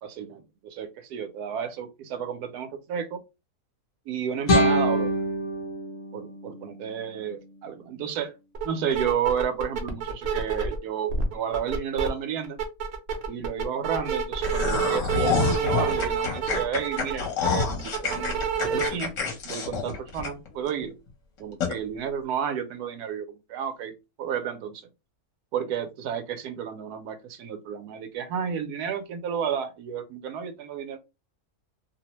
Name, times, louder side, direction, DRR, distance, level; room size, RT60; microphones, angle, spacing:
voice 1, 0.0-3.2 4.1-5.1 6.1-8.3 8.6-12.6 13.3-19.1 19.4-20.9 21.4-23.9 24.2-24.9 25.5-31.0, right 8 dB, 80° right, 1.1 m, -32 dB
sound 1, 4.5-7.5, equal, 40° left, 0.8 m, -26 dB
sound 2, 8.5-8.7 8.9-10.8 11.1-12.1 12.4-18.9, right 6 dB, 60° right, 0.7 m, -28 dB
sound 3, 14.4-20.7 21.1-21.2 21.6-21.7, left 5 dB, 60° left, 1.1 m, -28 dB
2.8 x 2.0 x 2.9 m
omnidirectional pair, 1.7 m